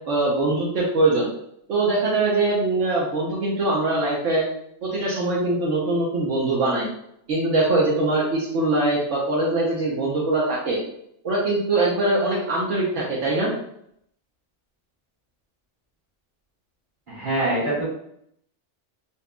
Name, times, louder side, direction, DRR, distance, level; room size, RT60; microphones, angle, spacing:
voice 1, 0.1-1.3 1.7-4.4 4.8-6.9 7.3-10.8 11.2-13.5, right 2 dB, 80° right, -4 dB, 1.1 m, -22 dB
voice 2, 17.1-17.9, right 1 dB, 45° right, -8 dB, 1.7 m, -24 dB
4.3 x 2.4 x 2.2 m, 0.72 s
omnidirectional pair, 1.2 m